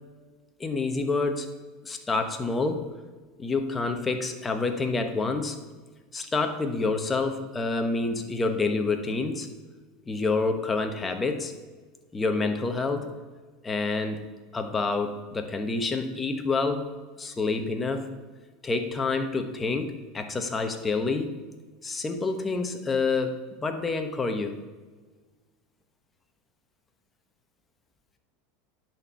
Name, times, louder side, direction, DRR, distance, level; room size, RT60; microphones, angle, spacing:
voice 1, 0.6-1.5 1.8-2.9 3.4-5.6 6.1-9.5 10.1-11.5 12.1-13.1 13.6-14.2 14.5-16.9 17.2-18.1 18.6-21.4 21.8-24.6, left 3 dB, 20° left, 6 dB, 1.1 m, -28 dB
10.5 x 4.5 x 6.8 m, 1.4 s
supercardioid pair, 115°, 0 cm